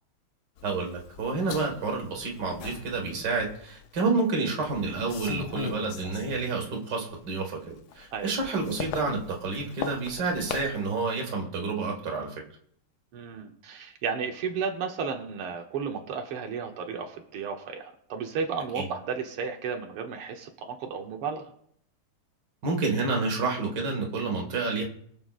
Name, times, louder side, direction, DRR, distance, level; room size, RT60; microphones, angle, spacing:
sound 1, 0.6-4.0 4.5-6.8 7.1-10.9, left 8 dB, 65° left, 1.0 m, -40 dB
voice 1, 0.6-12.3 18.7-18.9 22.6-24.9, right 3 dB, 55° right, 0 dB, 2.3 m, -29 dB
voice 2, 13.1-21.4, right 6 dB, 85° right, 3 dB, 1.9 m, -33 dB
23.0 x 7.8 x 2.5 m, 0.67 s
omnidirectional pair, 2.4 m